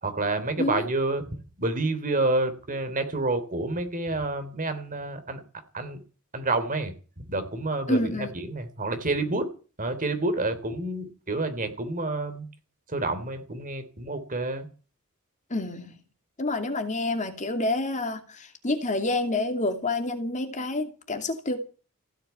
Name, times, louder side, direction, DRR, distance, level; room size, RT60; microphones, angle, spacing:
voice 1, 0.0-1.2 1.6-5.4 5.7-6.0 6.3-6.9 7.3-9.5 9.8-12.5 12.9-14.7, right 2 dB, 35° right, 3.2 m, -28 dB
voice 2, 7.9-8.3 15.5-15.9 16.4-21.6, left 2 dB, 35° left, 2.6 m, -28 dB
16.0 x 9.2 x 9.2 m
head